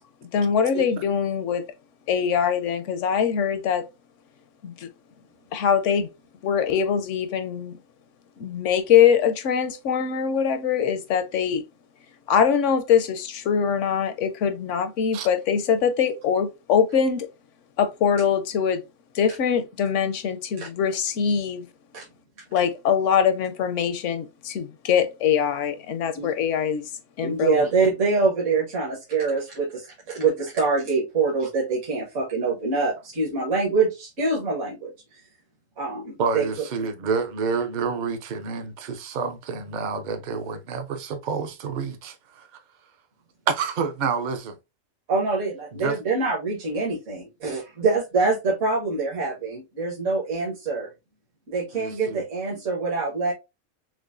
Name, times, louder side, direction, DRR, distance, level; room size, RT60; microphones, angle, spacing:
voice 1, 0.3-1.7 2.1-3.9 4.6-4.9 5.5-6.1 6.4-7.8 8.4-11.6 12.3-17.3 17.8-18.8 19.1-21.7 22.5-26.9 27.2-27.7, left 7 dB, 75° left, 0.9 m, -23 dB
voice 2, 27.2-35.2 35.8-36.4 45.1-50.9 51.5-53.3, right 4 dB, 65° right, 1.5 m, -25 dB
voice 3, 36.2-42.5 43.5-44.6 45.8-46.0 51.7-52.2, right 5 dB, 50° right, 0.6 m, -28 dB
6.0 x 2.1 x 2.5 m
omnidirectional pair, 1.4 m